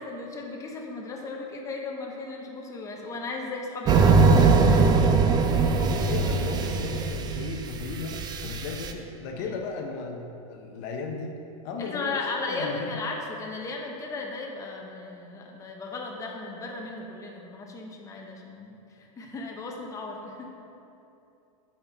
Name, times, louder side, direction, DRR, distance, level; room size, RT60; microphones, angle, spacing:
voice 1, 0.0-5.0 9.4-9.6 11.8-18.8 19.2-20.6, left 3 dB, 15° left, 0 dB, 0.8 m, -36 dB
sound 1, 3.8-8.9, right 4 dB, 25° right, 0.4 m, -21 dB
voice 2, 5.8-11.4 11.6-13.0, left 4 dB, 55° left, 2 dB, 0.7 m, -35 dB
7.7 x 4.3 x 4.4 m, 2.8 s
hypercardioid pair, 125°, 18 cm